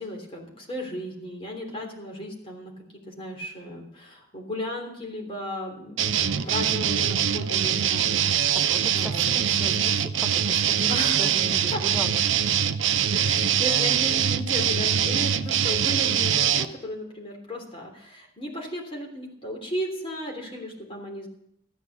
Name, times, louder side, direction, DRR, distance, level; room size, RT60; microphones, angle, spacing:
voice 1, 0.0-9.4 10.9-11.3 11.7-11.8 13.1-21.3, equal, 30° left, 0 dB, 3.3 m, -35 dB
sound 1, 6.0-16.7, right 9 dB, 75° right, 0.7 m, -23 dB
voice 2, 8.5-12.2, equal, ahead, 5 dB, 0.9 m, -37 dB
13.5 x 10.0 x 6.6 m, 0.74 s
head